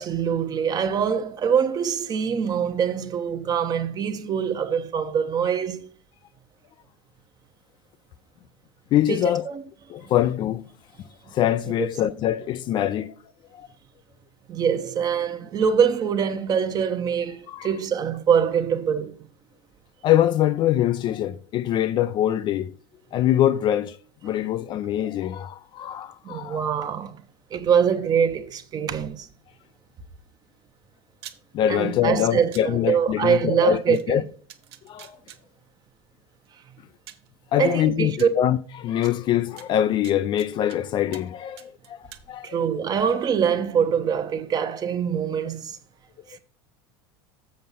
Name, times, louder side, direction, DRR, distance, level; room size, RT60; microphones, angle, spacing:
voice 1, 0.0-5.9 9.1-9.6 11.8-11.9 14.5-19.2 26.2-27.2 27.5-29.3 31.7-34.3 37.6-38.3 42.4-45.8 46.3-46.4, right 7 dB, 30° right, 0.9 m, -24 dB
voice 2, 8.9-9.5 9.9-10.6 11.3-13.1 13.5-13.7 17.5-17.7 20.0-22.7 23.1-24.0 24.2-26.7 31.5-34.2 34.9-35.2 37.5-42.0 42.3-42.6, left 11 dB, 40° left, 0.4 m, -23 dB
sound 1, 31.1-31.4 32.5-32.6 33.9-34.0 34.5-35.4 36.5-36.6 37.1-37.3 38.2-38.3 39.0-39.1 39.6-40.8 41.1-41.3 41.6-42.2, right 11 dB, 90° right, 0.9 m, -44 dB
7.7 x 5.5 x 5.4 m
supercardioid pair, 130°, 13 cm